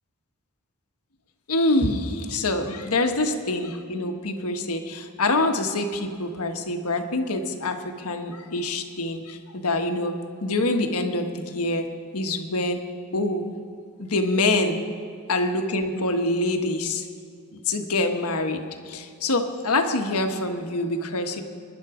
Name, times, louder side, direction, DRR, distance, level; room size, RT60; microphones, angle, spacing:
voice 1, 1.5-10.1 10.4-11.9 12.1-12.8 13.1-13.4 14.0-14.8 15.3-17.0 17.5-21.4, left 2 dB, 75° left, 5 dB, 1.4 m, -25 dB
25.0 x 11.0 x 5.0 m, 2.3 s
head